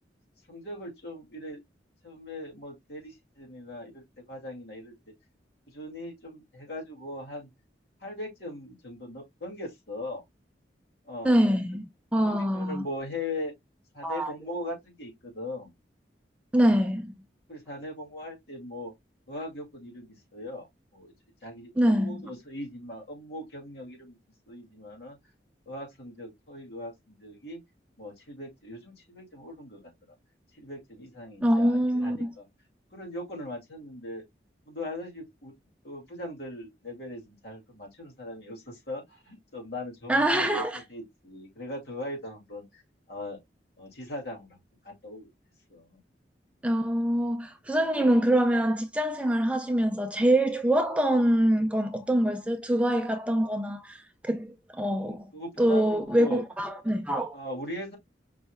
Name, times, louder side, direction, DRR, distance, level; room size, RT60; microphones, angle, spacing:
voice 1, 0.5-1.6 2.0-5.0 5.7-7.5 8.0-10.2 11.1-11.4 12.2-13.5 13.9-15.7 17.5-18.9 19.3-20.7 20.9-21.1 21.4-24.2 24.5-25.2 25.7-27.6 28.0-29.9 30.6-32.5 32.9-34.2 34.7-35.5 35.8-42.8 43.1-43.4 43.8-44.5 44.8-45.3 45.7-46.0 55.0-56.4 57.3-58.0, left 1 dB, 65° left, 2.3 m, -39 dB
voice 2, 11.2-12.8 14.0-14.3 16.5-17.1 21.8-22.2 31.4-32.3 40.1-40.8 46.6-55.3 55.6-57.4, right 1 dB, 5° right, 0.4 m, -25 dB
5.2 x 3.3 x 2.2 m
head